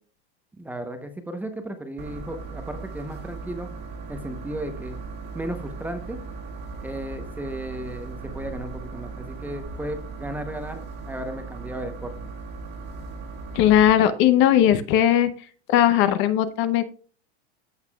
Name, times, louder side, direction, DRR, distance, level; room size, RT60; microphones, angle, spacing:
voice 1, 0.6-3.7 4.1-5.0 5.3-6.2 6.8-12.1, right 1 dB, 5° right, 7 dB, 0.8 m, -35 dB
sound 1, 2.0-13.9, right 4 dB, 30° right, 1.8 m, -38 dB
voice 2, 13.5-15.3 15.7-16.8, left 11 dB, 40° left, 11 dB, 0.7 m, -18 dB
14.5 x 5.6 x 2.3 m, 0.41 s
supercardioid pair, 150°, 31 cm